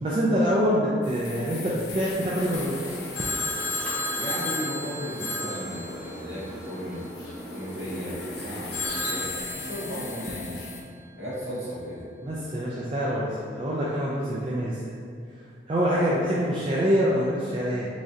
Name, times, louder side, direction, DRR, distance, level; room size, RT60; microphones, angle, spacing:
voice 1, 0.0-3.0 12.2-14.8 15.7-17.9, equal, 30° right, -6 dB, 0.3 m, -25 dB
sound 1, 1.0-10.8, left 4 dB, 70° left, 0.5 m, -41 dB
sound 2, 2.5-9.2, equal, 10° left, 0.7 m, -40 dB
Telephone, 3.1-6.4 8.7-10.2, left 2 dB, 45° left, 1.4 m, -32 dB
voice 2, 4.2-7.0 7.5-10.7 11.2-12.1, equal, 60° right, -10 dB, 1.4 m, -35 dB
3.6 x 3.1 x 2.7 m, 2.2 s
head